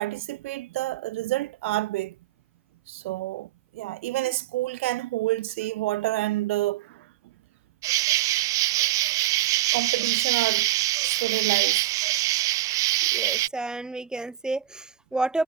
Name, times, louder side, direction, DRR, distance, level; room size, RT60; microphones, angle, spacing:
voice 1, 0.0-2.2 2.9-7.1 9.7-10.7 11.0-11.8, right 17 dB, 80° right, 1.3 m, -29 dB
Insect, 7.8-13.5, right 17 dB, 55° right, 0.4 m, -24 dB
voice 2, 13.1-15.4, right 2 dB, 10° right, 1.7 m, -30 dB
hypercardioid pair, 70°, 7 cm